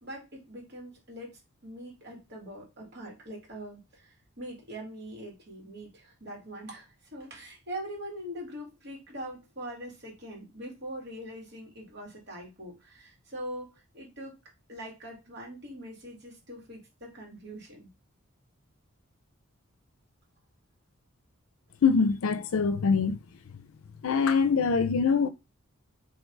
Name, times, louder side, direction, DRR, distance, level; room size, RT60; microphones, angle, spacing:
voice 1, 0.0-14.4 14.7-17.9, equal, 50° right, 2.0 m, -42 dB
voice 2, 21.8-23.2 24.0-25.3, left 5 dB, 75° left, 0.5 m, -24 dB
3.4 x 3.1 x 4.5 m
head